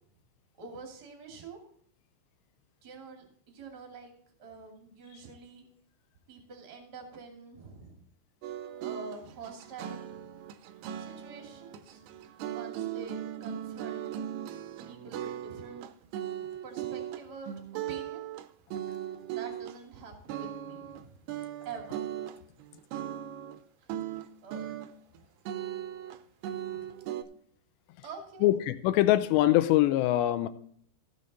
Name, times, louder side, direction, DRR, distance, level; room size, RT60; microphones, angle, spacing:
voice 1, 0.6-1.6 2.8-4.1 4.4-5.7 6.3-8.1 8.8-10.3 11.0-12.0 12.4-14.0 14.8-15.9 16.6-18.3 19.0-21.2 21.6-22.1 23.8-23.9 24.4-25.2 26.8-26.9 28.0-28.5, right 4 dB, 30° right, 2 dB, 2.0 m, -46 dB
sound 1, 8.4-20.0 20.3-21.0 21.3-23.6 23.9-25.2 25.5-27.2, right 11 dB, 90° right, 2.4 m, -38 dB
voice 2, 28.4-30.5, left 14 dB, 80° left, 12 dB, 2.7 m, -23 dB
15.0 x 6.4 x 4.1 m, 0.62 s
omnidirectional pair, 5.3 m